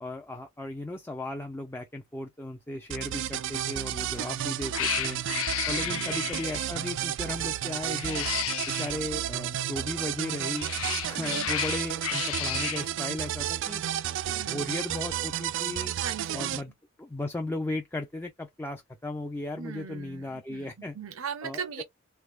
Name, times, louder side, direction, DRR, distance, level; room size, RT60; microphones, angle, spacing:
voice 1, 0.0-5.2 5.7-8.3 8.8-10.7 11.0-13.8 14.3-15.9 16.3-16.7 17.0-21.0 21.4-21.6, left 2 dB, 10° left, 0.4 m, -36 dB
sound 1, 2.9-16.6, right 11 dB, 60° right, 0.3 m, -32 dB
Cat, 4.0-4.3 4.7-6.7 7.9-8.9 10.3-12.9, left 11 dB, 80° left, 0.5 m, -33 dB
voice 2, 5.8-6.2 11.1-11.5 14.3-14.7 16.0-16.6 19.5-21.8, right 6 dB, 80° right, 0.7 m, -39 dB
3.4 x 3.2 x 2.3 m
head